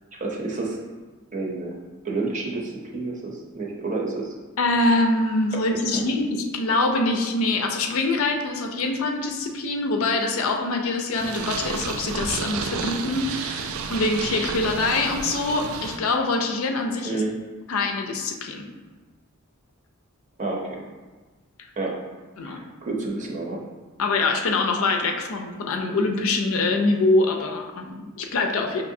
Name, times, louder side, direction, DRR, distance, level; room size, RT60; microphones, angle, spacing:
voice 1, 0.1-0.8 1.3-1.8 2.0-4.3 5.7-6.1 17.0-17.4 20.4-20.8 21.8-22.0 22.4-23.6, right 3 dB, 35° right, -1 dB, 0.7 m, -30 dB
voice 2, 4.6-17.2 17.7-18.7 22.4-22.6 24.0-28.8, left 2 dB, 70° left, 3 dB, 0.5 m, -24 dB
Purr, 11.1-16.0, right 5 dB, 65° right, 0.3 m, -31 dB
5.7 x 2.6 x 2.6 m, 1.3 s
head